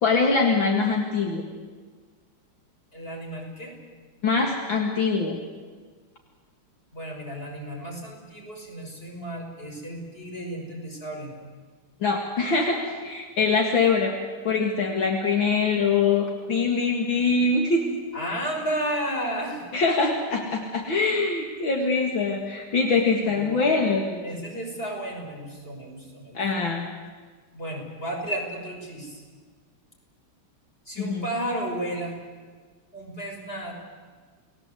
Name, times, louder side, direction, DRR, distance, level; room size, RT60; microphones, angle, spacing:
voice 1, 0.0-1.4 4.2-5.4 12.0-14.2 14.4-17.9 19.7-24.2 26.3-26.9 31.0-31.3, left 4 dB, 65° left, 1 dB, 2.8 m, -23 dB
voice 2, 2.9-3.7 6.9-11.4 18.1-19.7 23.2-23.6 24.2-26.4 27.5-29.2 30.9-32.2 32.9-33.7, right 1 dB, 25° left, 0 dB, 6.0 m, -33 dB
30.0 x 19.5 x 8.3 m, 1.5 s
omnidirectional pair, 2.3 m